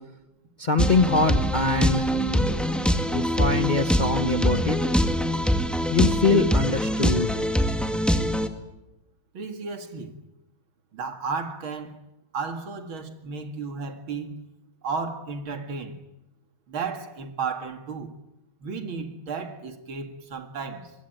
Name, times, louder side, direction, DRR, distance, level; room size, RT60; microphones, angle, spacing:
voice 1, 0.6-2.1 3.1-4.8 5.9-7.3, left 3 dB, 30° left, 0.9 m, -23 dB
sound 1, 0.8-8.5, equal, ahead, 1.6 m, -23 dB
voice 2, 9.3-10.1 10.9-12.0 12.3-14.4 14.8-16.0 16.7-18.1 18.6-20.9, right 5 dB, 75° right, 2.9 m, -33 dB
24.5 x 21.5 x 9.1 m
omnidirectional pair, 2.3 m